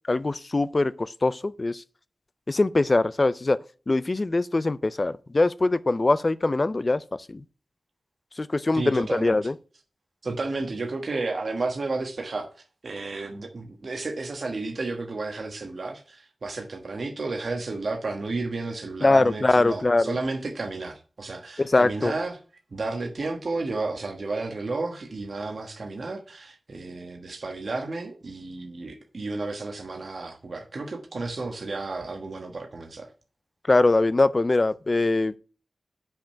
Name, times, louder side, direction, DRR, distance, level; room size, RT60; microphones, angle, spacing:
voice 1, 0.1-1.8 2.5-3.6 3.9-7.0 7.3-7.4 8.4-9.5 19.0-20.2 21.6-22.1 33.7-35.4, left 2 dB, 35° left, 0.4 m, -22 dB
voice 2, 8.7-9.4 10.2-12.5 12.8-22.4 22.7-33.1, right 3 dB, 60° right, 1.2 m, -32 dB
5.9 x 5.2 x 6.7 m
wide cardioid pair, 105°, 0 cm